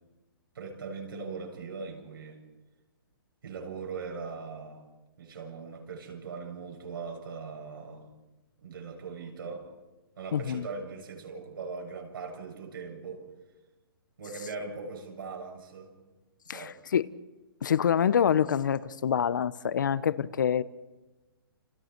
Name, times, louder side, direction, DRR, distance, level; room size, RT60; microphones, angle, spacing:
voice 1, 0.5-2.4 3.4-4.8 5.2-8.1 8.6-9.7 10.2-13.3 14.2-15.9 16.5-16.8, right 4 dB, 65° right, 7.7 m, -40 dB
voice 2, 10.3-10.7 16.5-17.1 17.6-20.6, left 8 dB, 50° left, 1.0 m, -26 dB
30.0 x 29.5 x 4.6 m
hypercardioid pair, 180°, 13 cm